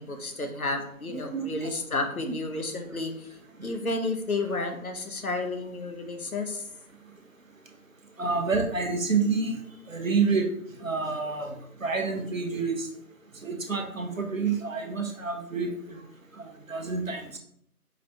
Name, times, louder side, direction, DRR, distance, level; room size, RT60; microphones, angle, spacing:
voice 1, 0.0-3.3 3.6-6.7, left 2 dB, 70° left, 5 dB, 0.9 m, -31 dB
voice 2, 1.1-1.7 2.3-2.4 4.6-4.7 8.2-9.6 9.9-10.5 10.8-12.9 13.4-16.0 16.7-17.4, right 4 dB, 60° right, 3 dB, 0.9 m, -28 dB
4.9 x 2.7 x 3.3 m, 0.69 s
figure-of-eight pair, 170°, 45 cm